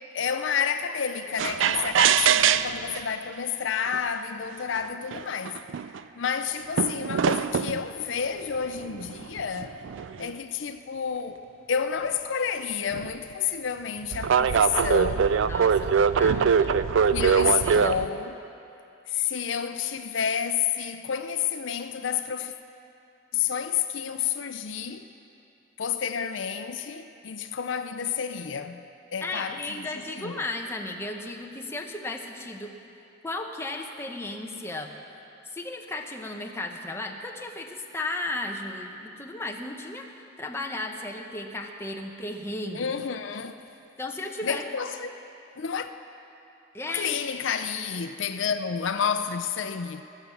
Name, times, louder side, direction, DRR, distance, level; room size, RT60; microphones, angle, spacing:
voice 1, 0.1-5.6 6.1-9.8 10.2-11.4 11.7-15.3 17.1-18.4 19.1-22.5 23.3-25.1 25.8-28.8 29.1-30.4 42.7-43.5 44.4-45.1 45.6-45.9 46.9-50.0, left 7 dB, 70° left, 0.5 m, -30 dB
sound 1, 1.4-3.0 3.9-4.0 4.8-4.9 5.1-6.0 6.8-7.8 8.8-10.3 12.9-13.1 14.1-18.1, right 7 dB, 75° right, 0.4 m, -23 dB
voice 2, 15.4-16.9 17.6-18.1 29.2-32.8 33.2-34.9 35.5-40.1 40.4-42.9 44.0-44.6 46.7-47.2, left 2 dB, 15° left, 0.9 m, -35 dB
20.0 x 7.2 x 7.0 m
head